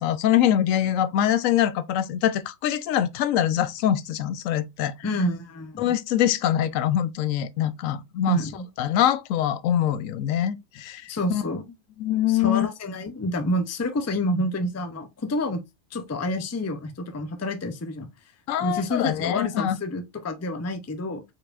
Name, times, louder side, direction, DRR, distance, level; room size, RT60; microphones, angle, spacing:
voice 1, 0.0-4.9 5.8-8.4 8.8-11.4 12.0-12.7 18.5-19.8, left 11 dB, 85° left, 1.0 m, -24 dB
voice 2, 5.0-5.9 8.3-8.7 11.1-11.6 12.3-15.6 15.9-18.1 18.6-21.2, left 1 dB, 20° left, 0.4 m, -28 dB
4.8 x 4.4 x 2.5 m
omnidirectional pair, 1.3 m